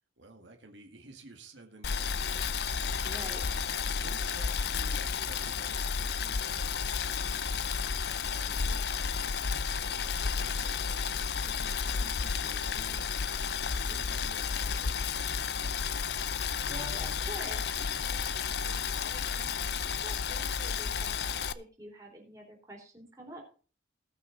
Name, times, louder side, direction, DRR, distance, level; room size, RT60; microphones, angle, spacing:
voice 1, 0.2-9.2 9.7-15.9, right 2 dB, 80° right, 4 dB, 1.9 m, -53 dB
Boiling, 1.8-21.5, left 6 dB, 60° left, 0.6 m, -32 dB
voice 2, 3.0-3.4 16.3-23.4, right 1 dB, 20° right, 0 dB, 3.9 m, -47 dB
18.5 x 6.4 x 3.9 m, 0.38 s
head